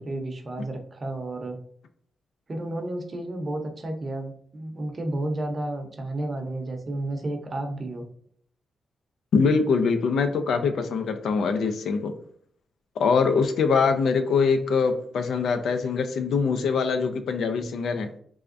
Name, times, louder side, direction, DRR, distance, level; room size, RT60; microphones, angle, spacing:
voice 1, 0.0-1.6 2.5-8.1, right 1 dB, 35° right, 4 dB, 0.7 m, -32 dB
voice 2, 9.3-12.1 13.0-18.1, left 5 dB, 85° left, 7 dB, 0.4 m, -23 dB
3.4 x 3.4 x 2.5 m, 0.62 s
cardioid pair, 115°, 0 cm